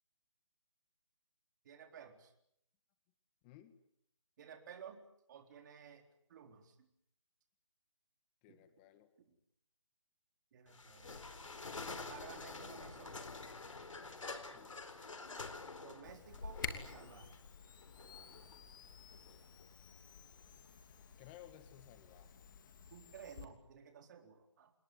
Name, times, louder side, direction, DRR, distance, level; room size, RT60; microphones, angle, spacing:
voice 1, 1.6-2.3 4.4-5.0 5.3-6.0 6.3-6.9 8.5-8.6 10.5-11.2 12.0-13.2 15.8-17.3 22.9-24.7, right 7 dB, 35° right, 5 dB, 4.0 m, -55 dB
voice 2, 3.4-3.8 8.4-9.1 14.5-14.8 21.2-22.4, left 13 dB, 20° left, 10 dB, 1.8 m, -58 dB
sound 1, 10.7-21.1, left 3 dB, 80° left, 4.3 m, -48 dB
Camera, 16.0-23.5, left 6 dB, 40° left, 3.0 m, -51 dB
28.0 x 21.0 x 9.5 m, 0.76 s
hypercardioid pair, 155°, 16 cm